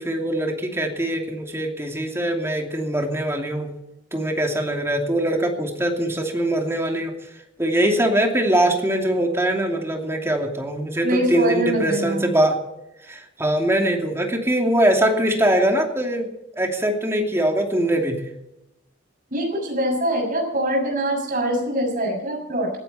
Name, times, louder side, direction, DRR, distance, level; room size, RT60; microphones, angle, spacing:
voice 1, 0.0-3.7 4.1-7.1 7.6-12.6 13.0-16.3 16.6-18.2, right 1 dB, 15° right, 2 dB, 2.7 m, -22 dB
voice 2, 11.0-12.3 19.3-22.7, right 1 dB, 45° right, 1 dB, 7.0 m, -23 dB
20.0 x 15.5 x 4.3 m, 0.90 s
head